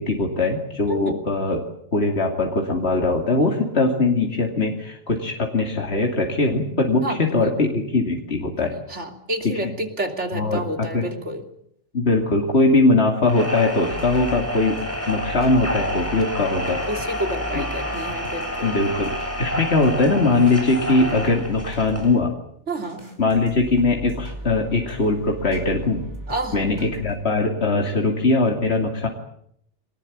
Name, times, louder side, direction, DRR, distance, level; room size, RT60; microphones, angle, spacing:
voice 1, 0.0-1.6 1.9-8.8 10.3-11.0 11.9-14.8 15.1-16.8 17.5-17.6 18.6-22.3 23.2-26.1 26.5-29.1, left 3 dB, 65° left, 2 dB, 3.0 m, -21 dB
voice 2, 7.0-7.5 8.9-11.4 16.9-18.8 22.7-23.0 24.2-24.3 26.3-26.7, right 1 dB, 85° right, 4 dB, 3.3 m, -29 dB
sound 1, 13.2-22.2, left 1 dB, 10° left, 7.2 m, -29 dB
sound 2, 13.9-22.2 22.7-27.2, right 1 dB, 25° right, 5.1 m, -38 dB
24.5 x 20.0 x 8.7 m, 0.69 s
omnidirectional pair, 1.2 m